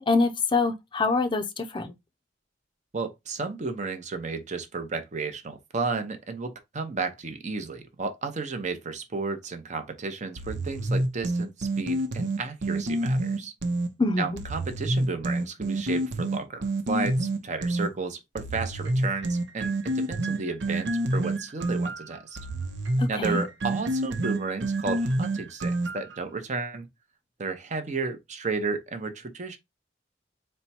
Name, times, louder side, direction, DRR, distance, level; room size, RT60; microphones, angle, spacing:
voice 1, 0.1-1.9 14.0-14.4 23.0-23.4, left 3 dB, 25° left, 0.5 m, -25 dB
voice 2, 2.9-13.5 14.2-22.4 23.1-26.9 27.4-29.6, right 4 dB, 40° right, 0.7 m, -33 dB
sound 1, 10.4-13.9 14.4-17.9 18.4-26.2, right 1 dB, 85° right, 0.8 m, -28 dB
4.3 x 2.2 x 4.2 m
head